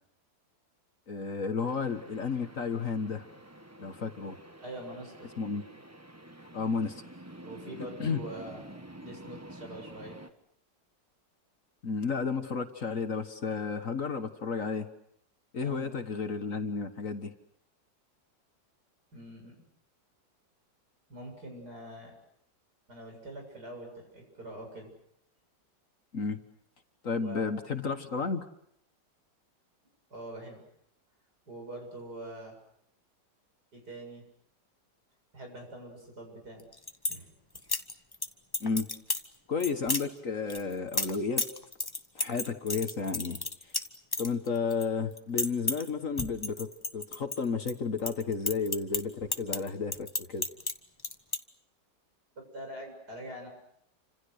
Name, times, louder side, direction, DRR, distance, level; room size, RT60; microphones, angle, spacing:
voice 1, 1.1-3.3 3.8-4.4 5.4-5.6 6.5-7.0 8.0-8.2 11.8-14.9 15.5-17.3 26.1-26.4 27.0-28.5 38.6-38.9 39.5-41.5 42.2-43.4 44.2-50.5, left 5 dB, 50° left, 8 dB, 1.7 m, -32 dB
sound 1, 1.6-10.3, right 1 dB, 10° right, 1.2 m, -49 dB
voice 2, 4.6-5.3 7.4-8.6 9.0-10.2 15.6-15.9 19.1-19.5 21.1-22.1 22.9-24.9 27.2-27.5 30.1-30.6 31.5-32.6 33.7-34.2 35.3-36.7 37.1-37.3 52.3-53.5, right 1 dB, 60° right, 2 dB, 8.0 m, -44 dB
sound 2, 36.6-37.2 37.6-38.3 38.5-39.3 39.6-40.0 40.5-44.8 45.1-45.9 46.2-47.7 48.0-50.7 51.0-51.4, left 2 dB, 15° left, 1.0 m, -32 dB
29.0 x 26.5 x 6.5 m, 0.71 s
omnidirectional pair, 1.9 m